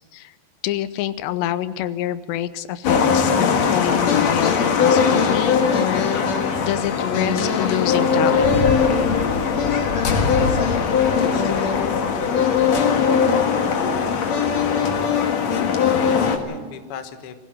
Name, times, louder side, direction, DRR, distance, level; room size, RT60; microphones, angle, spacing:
voice 1, 0.6-6.1 6.6-8.5, left 12 dB, 90° left, 14 dB, 3.1 m, -26 dB
sound 1, 2.8-16.4, left 6 dB, 50° left, 2.3 m, -19 dB
voice 2, 14.9-17.3, left 8 dB, 70° left, 8 dB, 1.3 m, -37 dB
23.0 x 16.0 x 7.7 m, 1.5 s
omnidirectional pair, 4.9 m